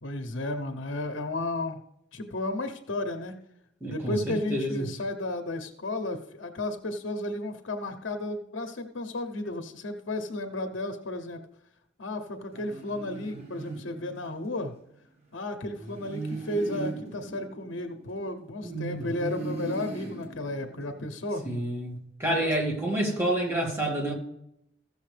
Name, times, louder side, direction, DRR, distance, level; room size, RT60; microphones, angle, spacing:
voice 1, 0.0-1.8 2.1-3.4 3.9-11.4 12.0-14.7 15.3-21.4 22.4-22.5, left 2 dB, 90° left, 7 dB, 0.9 m, -33 dB
voice 2, 3.8-4.9 18.6-19.1 21.4-24.1, right 1 dB, 15° right, -1 dB, 2.0 m, -29 dB
sound 1, 12.5-14.6 15.8-18.5 19.0-21.2, right 3 dB, 35° right, 1.6 m, -39 dB
15.5 x 6.8 x 3.3 m, 0.78 s
head